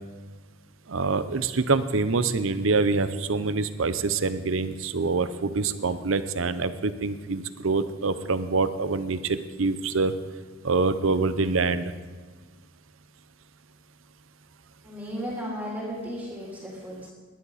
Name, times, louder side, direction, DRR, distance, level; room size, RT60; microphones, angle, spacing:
voice 1, 0.9-10.1 10.6-11.9, right 3 dB, 80° right, 12 dB, 0.8 m, -25 dB
voice 2, 14.8-17.1, equal, 10° right, -5 dB, 3.3 m, -35 dB
19.0 x 11.0 x 4.1 m, 1.4 s
head